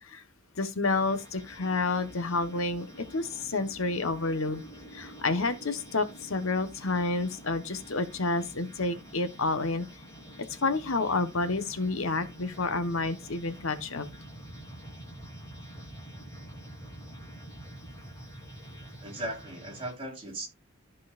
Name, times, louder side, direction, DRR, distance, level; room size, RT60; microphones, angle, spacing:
voice 1, 0.6-4.6 4.9-9.9 10.6-14.1, left 3 dB, 70° left, 1.1 m, -29 dB
sound 1, 0.8-19.9, right 1 dB, 15° left, 3.5 m, -47 dB
voice 2, 19.0-20.5, right 1 dB, 25° right, 3.5 m, -37 dB
14.0 x 5.5 x 2.4 m
head